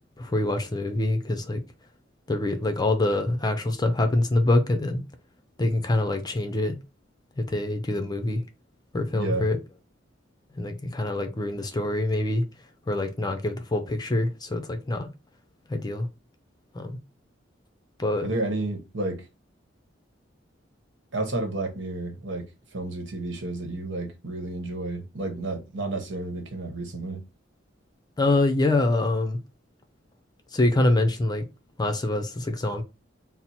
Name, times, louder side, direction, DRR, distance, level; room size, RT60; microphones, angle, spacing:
voice 1, 0.2-1.6 2.3-5.0 5.6-6.8 7.4-8.4 8.9-9.6 10.6-12.4 12.9-15.1 15.7-16.1 16.7-17.0 18.0-18.3 28.2-29.4 30.5-31.4 31.8-32.8, left 2 dB, 20° left, 0.6 m, -25 dB
voice 2, 9.1-9.5 18.2-19.3 21.1-22.4 22.7-27.2, right 2 dB, 70° right, 1.1 m, -31 dB
4.3 x 2.0 x 4.2 m
head